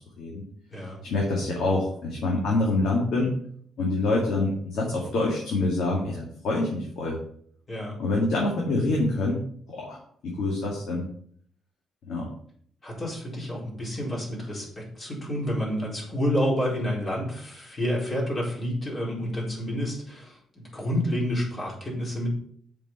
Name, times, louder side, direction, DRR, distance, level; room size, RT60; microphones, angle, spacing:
voice 1, 1.0-3.3 3.8-7.2 8.0-9.4 9.7-11.0 12.1-12.3, left 2 dB, 75° left, -3 dB, 2.3 m, -26 dB
voice 2, 7.7-8.0 12.8-22.3, equal, 30° left, -4 dB, 4.1 m, -29 dB
7.6 x 5.3 x 5.5 m, 0.62 s
cardioid pair, 90°, 0 cm